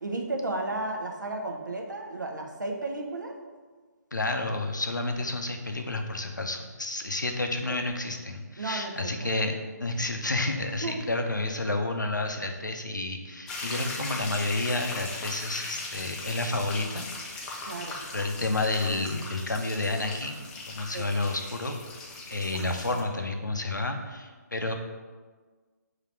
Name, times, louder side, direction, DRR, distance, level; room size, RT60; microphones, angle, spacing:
voice 1, 0.0-3.4 7.7-7.8 8.6-9.3 10.8-11.0 17.7-18.0 20.9-21.1 22.5-22.7, right 2 dB, 80° right, 2 dB, 0.7 m, -33 dB
voice 2, 4.1-17.1 18.1-21.8 22.3-24.7, left 2 dB, 90° left, 4 dB, 0.6 m, -30 dB
sound 1, 13.5-23.0, left 3 dB, 5° left, 0.3 m, -39 dB
3.9 x 2.8 x 4.4 m, 1.4 s
figure-of-eight pair, 140°, 10 cm